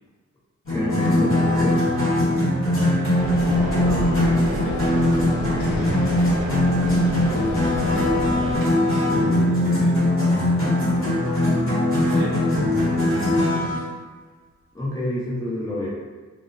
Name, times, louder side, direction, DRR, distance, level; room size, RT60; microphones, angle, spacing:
sound 1, 0.7-13.8, left 1 dB, 45° left, 0.9 m, -21 dB
voice 1, 0.7-1.8 14.7-15.9, left 1 dB, 10° left, -7 dB, 0.5 m, -27 dB
voice 2, 2.8-3.4 3.8-11.2 12.1-12.4 12.7-13.8, right 2 dB, 40° right, -7 dB, 0.6 m, -36 dB
sound 2, 3.2-8.6, left 1 dB, 75° left, 0.6 m, -30 dB
2.6 x 2.0 x 2.5 m, 1.4 s
wide cardioid pair, 150°, 29 cm